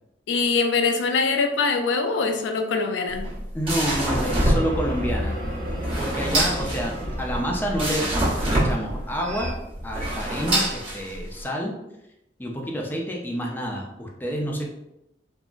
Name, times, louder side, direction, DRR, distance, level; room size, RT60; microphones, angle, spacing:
voice 1, 0.3-3.3, left 4 dB, 80° left, 5 dB, 0.3 m, -23 dB
sound 1, 3.1-11.4, right 1 dB, 30° right, 0.9 m, -26 dB
voice 2, 3.5-5.4 5.8-8.1 8.4-9.5 9.8-11.7 12.4-14.7, equal, 10° left, 0 dB, 0.4 m, -29 dB
sound 2, 4.0-9.5, equal, 90° right, 1.0 m, -31 dB
3.6 x 2.0 x 2.4 m, 0.86 s
head